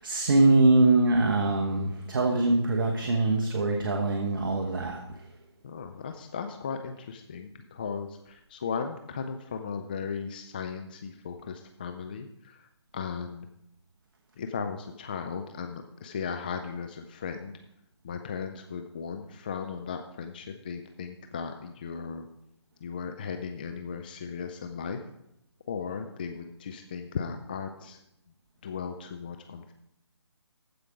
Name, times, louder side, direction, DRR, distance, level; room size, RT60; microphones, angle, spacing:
voice 1, 0.0-5.0, right 2 dB, 45° right, 1 dB, 1.2 m, -23 dB
voice 2, 5.6-12.7 12.9-13.5 14.4-17.5 18.0-22.3 22.8-25.0 25.7-28.0 28.6-29.7, left 6 dB, 20° left, 6 dB, 0.3 m, -36 dB
14.5 x 5.1 x 4.8 m, 0.82 s
figure-of-eight pair, 150°, 15 cm